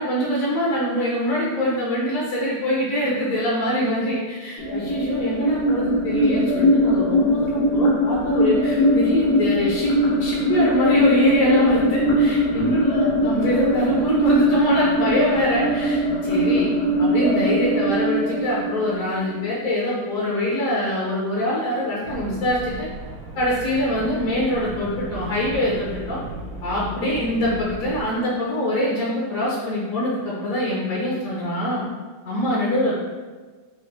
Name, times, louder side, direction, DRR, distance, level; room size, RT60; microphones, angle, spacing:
voice 1, 0.0-16.7 17.0-22.9 23.4-26.2 26.6-31.8 32.2-33.0, equal, 60° left, -5 dB, 0.8 m, -24 dB
sound 1, 4.6-19.5, equal, 85° left, 2.0 m, -21 dB
sound 2, 22.0-28.0, right 2 dB, 85° right, 1.7 m, -35 dB
6.0 x 2.1 x 3.2 m, 1.4 s
omnidirectional pair, 2.3 m